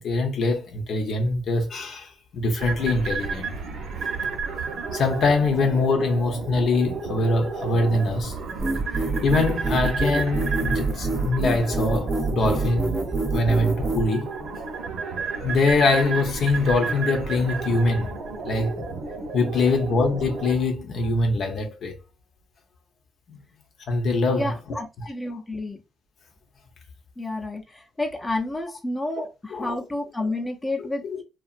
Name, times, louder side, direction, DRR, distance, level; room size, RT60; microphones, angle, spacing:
voice 1, 0.0-3.6 4.9-8.4 9.2-12.9 13.3-14.3 15.4-18.1 18.4-18.9 19.3-21.9 23.3-23.4 23.9-24.5 25.0-25.1 29.5-29.7 30.8-31.2, left 3 dB, 65° left, 0.7 m, -23 dB
sound 1, 2.6-20.6, right 4 dB, 75° right, 0.9 m, -32 dB
sound 2, 8.6-14.1, right 3 dB, 25° right, 0.6 m, -26 dB
voice 2, 24.3-25.8 27.2-31.2, left 2 dB, 15° left, 0.6 m, -30 dB
2.7 x 2.4 x 2.5 m
cardioid pair, 90°, 0 cm